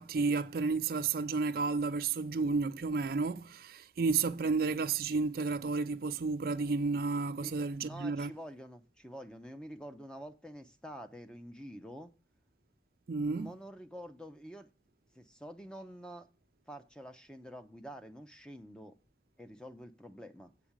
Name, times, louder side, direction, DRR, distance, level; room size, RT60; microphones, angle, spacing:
voice 1, 0.0-8.3 13.1-13.5, right 4 dB, 55° right, 0.4 m, -32 dB
voice 2, 7.4-12.1 13.2-14.7 15.1-16.3 16.7-19.0 19.4-20.5, equal, 5° left, 0.6 m, -47 dB
8.1 x 5.0 x 7.2 m
head